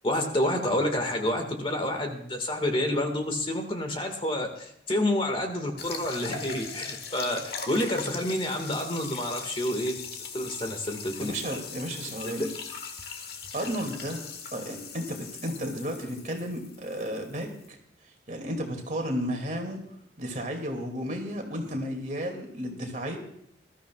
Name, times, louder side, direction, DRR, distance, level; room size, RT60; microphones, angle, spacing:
voice 1, 0.0-10.0 10.3-11.3 12.2-12.3, left 1 dB, 30° left, 4 dB, 1.7 m, -29 dB
sound 1, 5.8-17.7, left 5 dB, 60° left, 1.5 m, -40 dB
voice 2, 11.2-12.5 13.5-17.8 18.3-19.8 20.2-23.2, equal, 45° right, 3 dB, 2.4 m, -33 dB
21.0 x 13.0 x 2.4 m, 0.74 s
head